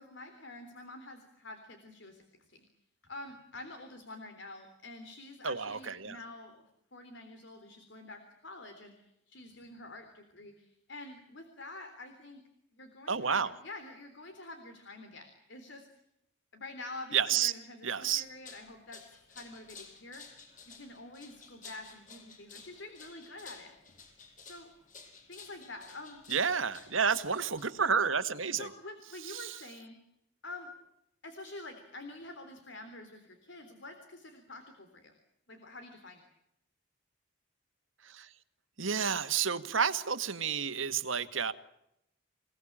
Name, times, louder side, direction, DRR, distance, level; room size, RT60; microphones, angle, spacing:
voice 1, 0.0-2.6 3.0-12.4 12.7-15.9 16.5-19.0 19.3-20.3 20.6-23.8 24.4-24.7 25.3-26.2 28.6-30.0 30.4-30.7 31.2-35.1 35.5-36.3, left 2 dB, 65° left, 7 dB, 3.7 m, -47 dB
voice 2, 5.4-6.2 13.1-13.5 17.1-17.5 17.8-18.2 26.3-28.7 29.3-29.5 38.1-38.3 38.8-41.5, right 6 dB, 75° right, 10 dB, 1.8 m, -30 dB
sound 1, 18.2-28.0, left 5 dB, 40° left, 6.8 m, -53 dB
28.5 x 19.0 x 8.8 m, 0.81 s
head